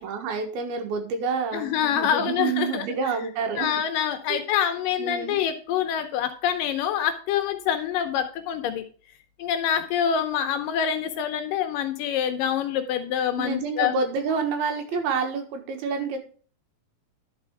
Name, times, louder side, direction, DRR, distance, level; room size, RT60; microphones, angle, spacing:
voice 1, 0.0-3.8 4.3-4.4 5.0-5.4 13.4-16.2, right 5 dB, 85° right, 4 dB, 3.3 m, -28 dB
voice 2, 1.5-2.9 3.6-8.8 9.4-13.9 14.9-15.0, left 9 dB, 75° left, 8 dB, 2.2 m, -26 dB
11.0 x 4.5 x 4.5 m, 0.40 s
omnidirectional pair, 4.3 m